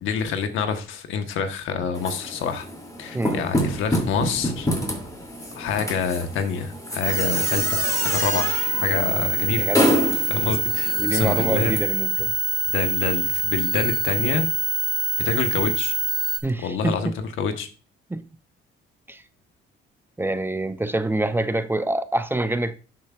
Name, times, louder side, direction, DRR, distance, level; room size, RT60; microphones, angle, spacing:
voice 1, 0.0-2.7 3.0-4.7 5.5-8.5 8.8-9.7 10.3-11.8 12.7-14.5 15.2-15.9 16.6-17.7, left 6 dB, 85° left, 1.2 m, -27 dB
sound 1, 1.9-11.8, equal, 15° left, 2.8 m, -28 dB
voice 2, 3.1-3.5 9.6-9.9 11.0-12.3 16.4-17.2 18.1-18.2 19.1-19.2 20.2-22.8, right 2 dB, 10° right, 0.5 m, -26 dB
sound 2, 7.0-16.4, right 4 dB, 30° left, 1.8 m, -25 dB
11.0 x 7.4 x 2.4 m
cardioid pair, 90°, 20 cm